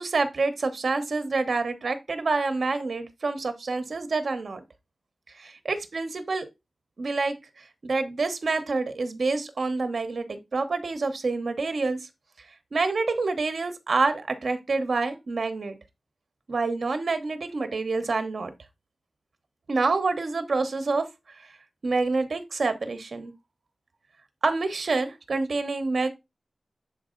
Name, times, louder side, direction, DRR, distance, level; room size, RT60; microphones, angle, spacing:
voice 1, 0.0-4.6 5.3-6.5 7.0-12.0 12.7-15.7 16.5-18.5 19.7-21.1 21.4-21.5 21.8-23.3 24.4-26.1, right 3 dB, 65° right, 0.9 m, -27 dB
6.9 x 4.1 x 3.7 m
wide cardioid pair, 90°, 0 cm